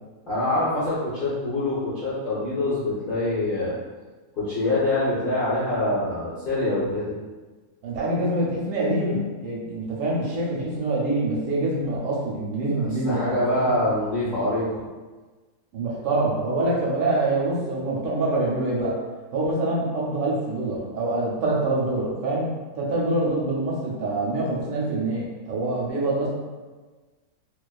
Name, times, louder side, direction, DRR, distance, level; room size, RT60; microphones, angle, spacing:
voice 1, 0.3-3.7 4.4-7.1 12.7-14.8, left 1 dB, 55° left, -11 dB, 0.5 m, -25 dB
voice 2, 7.8-13.7 15.7-19.0 19.3-22.5 22.7-26.3, right 2 dB, 70° right, -4 dB, 0.9 m, -25 dB
2.4 x 2.2 x 2.3 m, 1.3 s
omnidirectional pair, 1.6 m